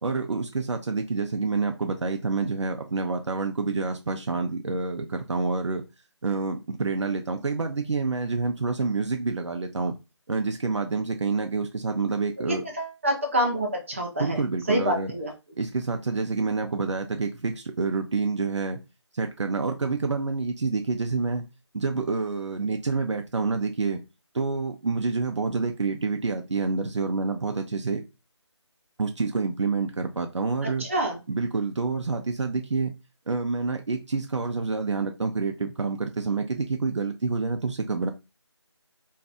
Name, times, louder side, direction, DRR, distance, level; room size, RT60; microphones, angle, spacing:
voice 1, 0.0-5.8 6.2-9.9 10.3-12.6 14.2-15.1 15.6-18.8 19.1-21.5 21.7-24.0 24.3-28.1 29.0-30.9 31.3-32.9 33.3-38.1, right 4 dB, 75° right, 0.5 m, -28 dB
voice 2, 12.4-14.4 14.7-15.3 30.6-31.2, right 1 dB, 25° right, 0.6 m, -27 dB
2.6 x 2.4 x 3.3 m
figure-of-eight pair, 165°, 15 cm